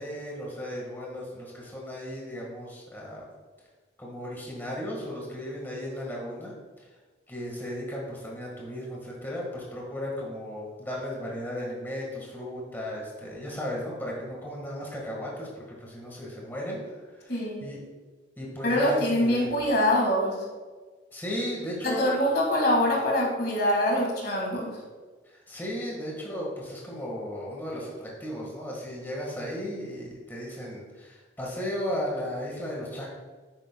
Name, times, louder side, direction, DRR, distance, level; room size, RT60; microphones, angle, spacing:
voice 1, 0.0-3.2 4.0-6.5 7.3-17.8 18.4-19.5 21.1-22.1 25.3-33.1, equal, 10° left, -3 dB, 1.6 m, -35 dB
voice 2, 17.3-17.6 18.6-20.4 21.8-24.7, left 1 dB, 55° left, -1 dB, 2.0 m, -24 dB
10.0 x 8.9 x 2.3 m, 1.4 s
head